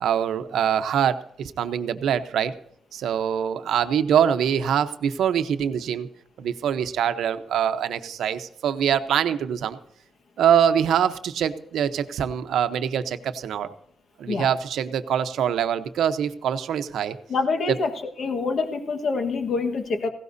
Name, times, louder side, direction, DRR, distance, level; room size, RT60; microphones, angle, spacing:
voice 1, 0.0-2.6 2.9-6.1 6.4-9.8 10.4-13.7 14.2-17.2 17.7-17.8, right 8 dB, 85° right, 10 dB, 0.8 m, -24 dB
voice 2, 17.3-17.9 18.2-20.1, left 4 dB, 50° left, 6 dB, 1.4 m, -25 dB
17.5 x 16.5 x 2.7 m, 0.68 s
cardioid pair, 130°, 0 cm